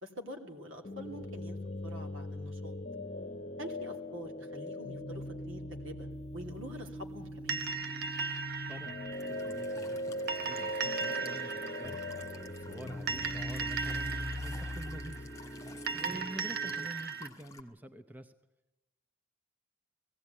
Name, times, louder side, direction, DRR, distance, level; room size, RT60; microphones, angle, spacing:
voice 1, 0.0-1.6 1.8-2.7 3.6-7.6 15.9-16.3, equal, 70° right, 3 dB, 3.0 m, -46 dB
sound 1, 0.8-16.9, left 1 dB, 35° left, 1.0 m, -40 dB
sound 2, 7.5-17.3, right 5 dB, 50° right, 0.9 m, -38 dB
voice 2, 8.7-9.0 9.3-18.3, right 1 dB, 10° right, 8 dB, 0.6 m, -48 dB
Walk footsteps / Chirp tweet / Stream, 9.1-17.6, left 3 dB, 15° left, 1.9 m, -53 dB
18.0 x 16.5 x 9.4 m, 0.97 s
head